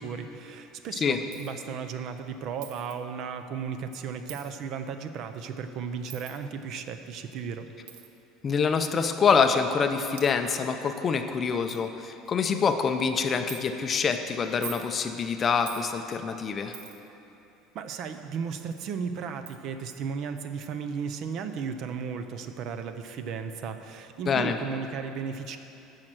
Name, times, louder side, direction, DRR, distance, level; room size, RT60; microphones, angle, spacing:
voice 1, 0.0-7.7 17.7-25.6, right 6 dB, 45° right, 8 dB, 0.6 m, -35 dB
Coin (dropping), 1.3-1.6 2.6-3.0 4.3-4.5 6.1-6.4 7.9-8.1 9.0-9.1 9.8-9.9 10.2-10.3 11.0-11.1 11.3-11.4 11.7-11.8 12.3-12.6 13.5-13.6 14.5-14.9 15.7-15.9 16.7-17.1 18.7-18.8 19.5-19.6, right 9 dB, 90° right, 0.9 m, -42 dB
voice 2, 8.4-16.8 24.3-24.6, left 5 dB, 25° left, 7 dB, 0.5 m, -26 dB
10.5 x 6.5 x 7.5 m, 2.9 s
cardioid pair, 165°, 0 cm